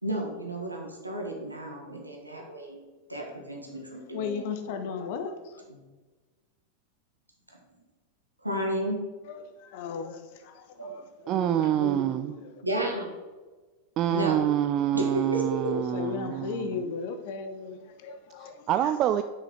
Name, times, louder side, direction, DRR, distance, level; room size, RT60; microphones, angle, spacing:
voice 1, 0.0-2.8 3.1-4.4 5.7-5.8 8.4-9.1 10.8-11.0 11.2-13.1 14.1-14.4 14.9-15.7, right 1 dB, 85° right, 0 dB, 1.7 m, -33 dB
voice 2, 4.1-5.6 9.2-12.6 15.7-18.9, left 5 dB, 50° left, 8 dB, 1.0 m, -37 dB
voice 3, 11.3-12.4 14.0-16.7 18.4-19.2, right 11 dB, 35° right, 10 dB, 0.3 m, -26 dB
6.3 x 6.2 x 5.7 m, 1.3 s
figure-of-eight pair, 90°, 0 cm